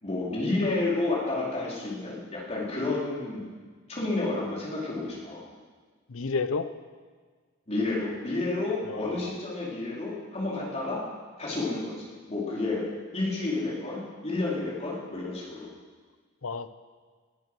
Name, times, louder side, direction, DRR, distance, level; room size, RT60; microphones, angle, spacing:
voice 1, 0.0-3.5 3.9-5.4 7.7-11.0 11.4-11.9 12.3-12.8 13.1-15.7, left 2 dB, 35° left, -5 dB, 4.1 m, -30 dB
voice 2, 6.1-6.7 8.9-9.3 16.4-16.7, left 4 dB, 75° left, 11 dB, 0.7 m, -31 dB
19.5 x 9.3 x 6.3 m, 1.5 s
head